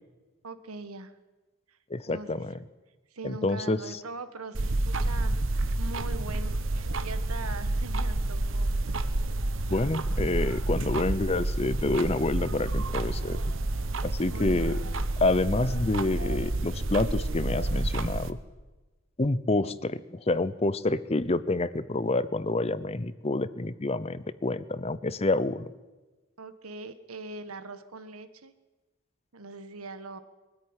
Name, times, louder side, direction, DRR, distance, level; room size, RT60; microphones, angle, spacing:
voice 1, 0.4-1.1 1.7-1.8 2.1-2.4 3.1-8.9 13.9-14.9 26.4-28.5 29.3-30.2, right 3 dB, 90° right, 10 dB, 1.7 m, -42 dB
voice 2, 1.9-2.6 3.2-3.8 9.7-13.4 14.0-14.8 15.2-18.4 19.2-25.7, left 2 dB, 30° left, 16 dB, 0.7 m, -28 dB
sound 1, 4.5-18.3, right 2 dB, 60° right, 1.2 m, -29 dB
23.0 x 14.0 x 9.8 m, 1.2 s
head